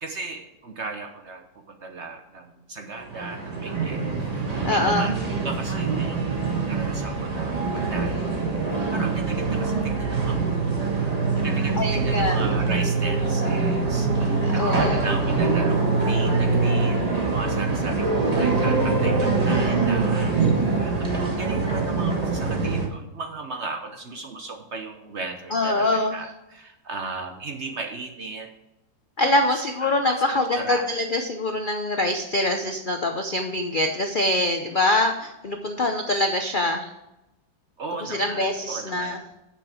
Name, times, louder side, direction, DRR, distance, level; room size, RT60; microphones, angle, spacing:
voice 1, 0.0-6.3 6.7-10.9 11.3-28.5 29.2-30.8 37.8-39.3, right 3 dB, 50° right, 4 dB, 0.9 m, -36 dB
sound 1, 3.0-22.9, right 4 dB, 25° right, 1.4 m, -24 dB
voice 2, 4.6-5.1 11.8-12.4 14.4-15.1 25.5-26.2 29.2-36.9 38.0-39.2, left 1 dB, 60° left, 4 dB, 0.5 m, -24 dB
8.9 x 6.7 x 4.9 m, 0.93 s
omnidirectional pair, 1.9 m